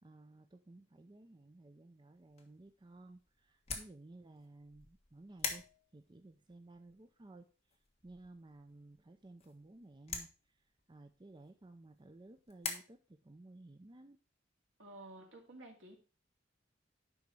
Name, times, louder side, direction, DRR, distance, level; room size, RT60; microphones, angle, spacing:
voice 1, 0.0-5.7 5.9-7.5 8.0-14.2, right 2 dB, 25° right, 7 dB, 0.5 m, -56 dB
sound 1, 2.2-12.7, left 5 dB, 35° left, 1.5 m, -47 dB
voice 2, 14.8-16.0, right 2 dB, 80° right, 1 dB, 2.4 m, -52 dB
10.5 x 4.1 x 4.7 m, 0.35 s
head